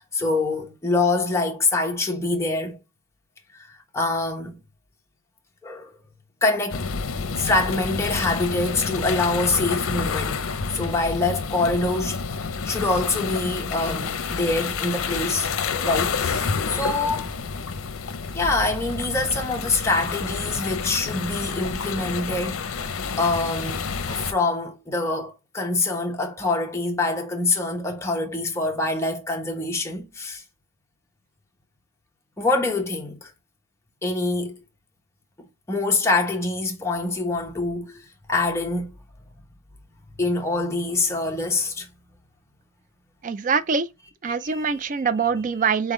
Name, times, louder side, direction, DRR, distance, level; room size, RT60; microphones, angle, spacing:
voice 1, 0.0-2.8 3.5-4.5 5.6-5.9 6.4-6.9 7.4-10.4 10.7-17.3 18.3-30.4 32.4-33.3 34.0-34.6 35.7-38.9 40.2-41.9 44.3-45.0, left 3 dB, 15° left, 0.9 m, -25 dB
sound 1, 6.7-24.3, left 5 dB, 75° left, 0.6 m, -29 dB
voice 2, 43.2-43.9 44.2-45.9, right 5 dB, 35° right, 0.4 m, -24 dB
4.0 x 3.7 x 3.6 m
head